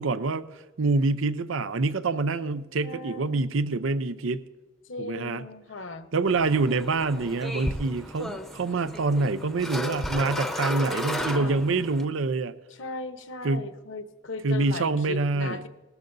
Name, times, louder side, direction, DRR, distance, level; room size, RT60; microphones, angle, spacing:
voice 1, 0.0-4.4 5.0-5.4 6.1-12.5 13.4-13.6 14.4-15.6, right 3 dB, 80° right, 14 dB, 0.6 m, -26 dB
voice 2, 2.8-3.4 4.9-6.1 10.8-11.6 12.8-15.7, left 2 dB, 70° left, 8 dB, 1.0 m, -37 dB
sound 1, 6.3-12.1, equal, ahead, 0.7 m, -34 dB
19.5 x 14.0 x 2.7 m, 1.2 s
head